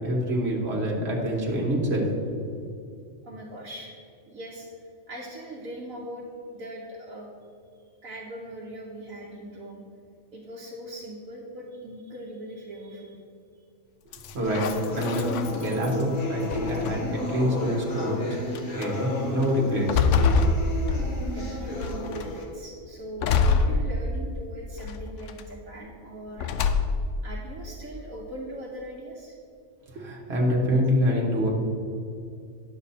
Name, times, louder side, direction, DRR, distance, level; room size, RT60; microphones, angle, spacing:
voice 1, 0.0-2.4 14.3-14.6 14.9-18.2 18.5-20.1 29.9-31.5, equal, 50° right, -2 dB, 1.8 m, -26 dB
voice 2, 3.2-3.9 4.3-4.7 5.1-7.3 8.0-9.8 10.3-13.2 21.3-26.5 27.2-29.3, right 1 dB, 85° right, -4 dB, 1.5 m, -40 dB
sound 1, 14.1-16.0 16.5-17.2 18.0-18.1 18.5-18.9 19.4-21.4 21.8-22.3 23.2-24.4 24.8-25.4 26.4-27.2, left 4 dB, 70° left, 0.9 m, -25 dB
sound 2, 14.4-22.4, left 1 dB, 40° left, 1.5 m, -33 dB
10.0 x 7.2 x 4.2 m, 2.4 s
omnidirectional pair, 1.4 m